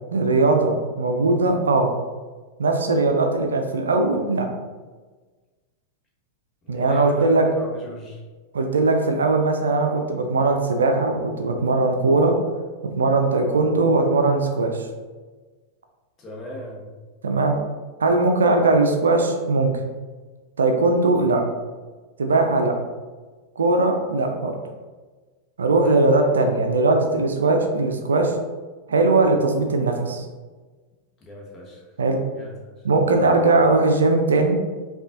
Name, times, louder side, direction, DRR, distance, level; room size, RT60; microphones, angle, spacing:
voice 1, 0.1-1.9 2.6-4.5 6.7-7.4 8.5-12.3 13.0-14.9 17.2-17.6 18.0-19.7 20.6-21.4 22.2-22.7 23.6-24.5 25.6-28.3 28.9-30.2 32.0-32.2 32.8-34.6, right 3 dB, 70° right, 4 dB, 0.4 m, -19 dB
voice 2, 6.7-8.2 16.2-16.9 25.8-26.0 31.3-31.8 32.3-32.9, left 1 dB, 25° left, -2 dB, 1.0 m, -38 dB
5.2 x 2.4 x 2.5 m, 1.3 s
figure-of-eight pair, 90°, 0 cm